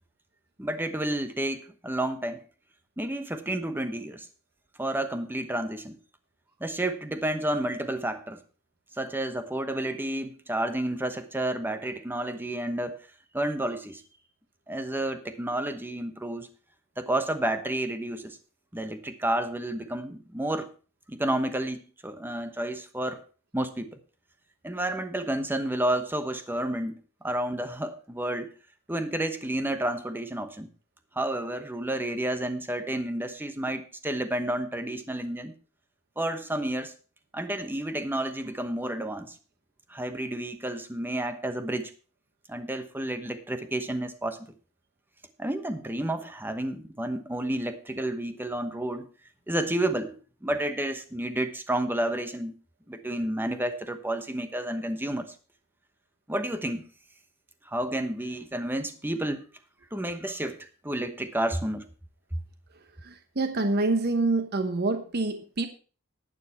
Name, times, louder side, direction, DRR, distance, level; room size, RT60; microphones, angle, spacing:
voice 1, 0.6-2.4 3.0-4.3 4.8-6.0 6.6-8.4 9.0-13.0 13.3-14.0 14.7-16.5 17.0-18.4 18.7-20.7 21.1-23.2 23.5-24.0 24.6-28.5 28.9-30.7 31.1-35.5 36.2-36.9 37.3-39.4 39.9-41.9 42.5-44.5 45.4-49.1 49.5-52.5 52.9-55.3 56.3-56.8 57.7-59.5 59.9-61.9 62.3-62.4, right 1 dB, 10° right, 9 dB, 1.0 m, -30 dB
voice 2, 63.0-65.7, right 2 dB, 50° right, 8 dB, 1.0 m, -26 dB
11.5 x 9.0 x 4.3 m, 0.37 s
head